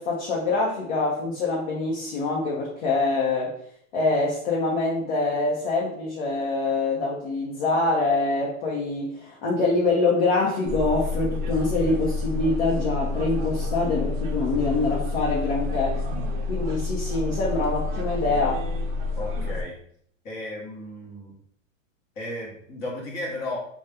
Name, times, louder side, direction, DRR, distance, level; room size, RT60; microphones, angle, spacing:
voice 1, 0.0-3.5 3.9-16.1 16.5-18.6, left 3 dB, 50° left, -4 dB, 0.8 m, -25 dB
sound 1, 10.7-19.6, left 3 dB, 40° right, 0.7 m, -29 dB
voice 2, 19.2-19.8 20.2-21.3 22.2-23.6, left 1 dB, 25° left, -4 dB, 1.0 m, -34 dB
2.8 x 2.3 x 3.4 m, 0.66 s
supercardioid pair, 160°, 39 cm